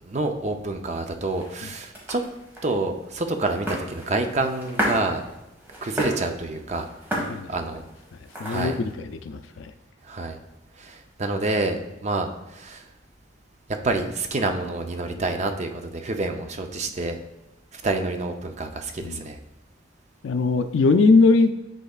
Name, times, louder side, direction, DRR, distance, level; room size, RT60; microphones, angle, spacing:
voice 1, 0.0-2.2 2.6-5.3 5.8-6.9 7.5-7.8 8.4-8.8 10.0-10.4 10.8-12.8 13.7-17.2 17.7-19.4, right 2 dB, 35° right, 5 dB, 0.6 m, -28 dB
sound 1, 0.8-8.9, equal, 10° right, 1.5 m, -34 dB
voice 2, 7.1-7.5 8.4-9.7 19.0-19.2 20.2-21.5, left 3 dB, 75° left, 9 dB, 0.4 m, -20 dB
9.9 x 4.0 x 2.4 m, 0.97 s
head